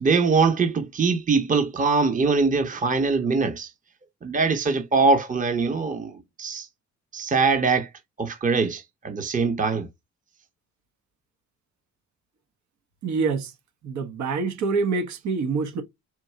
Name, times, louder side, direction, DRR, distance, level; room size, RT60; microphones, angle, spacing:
voice 1, 0.0-3.7 4.2-6.7 7.1-7.9 8.2-9.9, right 4 dB, 25° right, 0.8 m, -22 dB
voice 2, 13.0-13.5 13.8-15.8, right 4 dB, 70° right, 1.2 m, -26 dB
4.5 x 2.7 x 4.4 m
cardioid pair, 90°, 30 cm